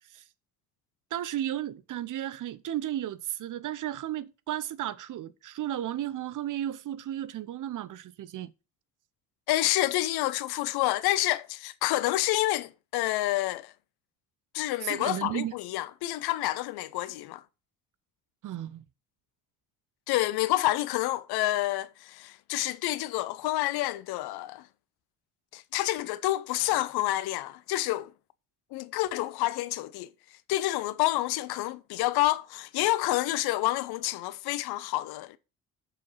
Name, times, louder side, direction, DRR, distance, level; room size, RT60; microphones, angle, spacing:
voice 1, 1.1-8.5 14.8-15.5 18.4-18.8, right 12 dB, 45° right, 0.8 m, -34 dB
voice 2, 9.5-13.7 14.5-17.4 20.1-24.7 25.5-28.1 28.7-30.1 30.5-35.4, left 16 dB, 55° left, 0.7 m, -28 dB
6.8 x 6.7 x 5.5 m
figure-of-eight pair, 50°, 45 cm